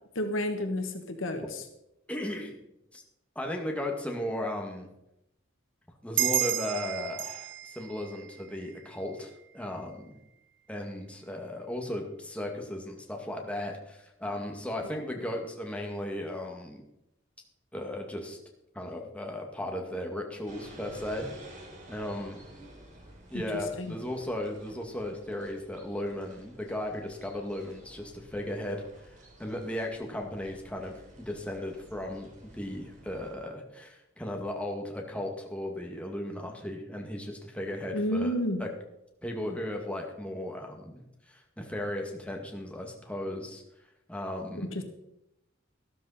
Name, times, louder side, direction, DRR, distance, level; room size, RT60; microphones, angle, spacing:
voice 1, 0.1-1.6 14.8-15.2 23.3-23.4 23.8-23.9 37.9-38.6 44.5-44.8, left 1 dB, 80° left, 6 dB, 1.6 m, -31 dB
voice 2, 2.1-2.6 2.9-3.0 3.4-4.9 6.0-10.1 10.7-16.8 17.7-18.4 18.7-21.3 21.9-22.5 23.3-28.8 29.4-38.3 38.6-38.7 39.2-41.0 41.3-43.6 44.1-44.7, left 1 dB, 5° left, 1 dB, 2.0 m, -36 dB
sound 1, 6.2-9.3, right 13 dB, 65° right, 0.9 m, -32 dB
sound 2, 20.5-33.3, right 1 dB, 40° right, 4.1 m, -52 dB
13.5 x 13.0 x 4.2 m, 0.84 s
head